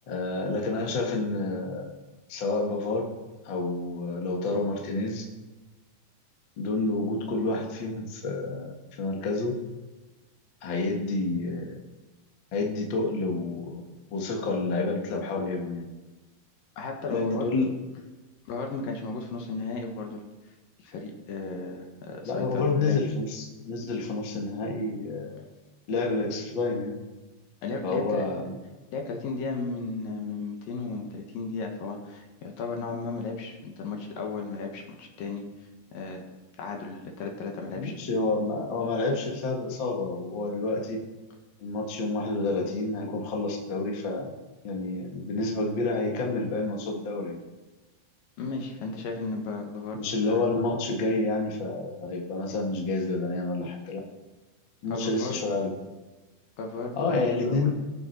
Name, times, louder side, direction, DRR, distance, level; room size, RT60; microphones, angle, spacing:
voice 1, 0.1-1.9 2.3-3.1 3.4-5.2 6.6-8.7 9.0-9.6 10.6-11.8 12.5-13.8 14.1-15.8 17.1-17.7 22.2-25.4 25.9-27.0 27.8-28.6 37.7-41.0 41.6-44.3 44.6-47.4 49.9-54.0 54.8-55.8 57.0-57.7, left 3 dB, 45° left, 0 dB, 1.5 m, -29 dB
voice 2, 16.8-17.5 18.5-20.3 20.8-23.0 27.6-28.3 28.9-35.4 35.9-36.2 36.6-38.0 48.4-50.5 54.9-55.4 56.6-57.7, left 3 dB, 65° left, 2 dB, 2.9 m, -35 dB
19.0 x 7.5 x 4.5 m, 1.2 s
omnidirectional pair, 4.6 m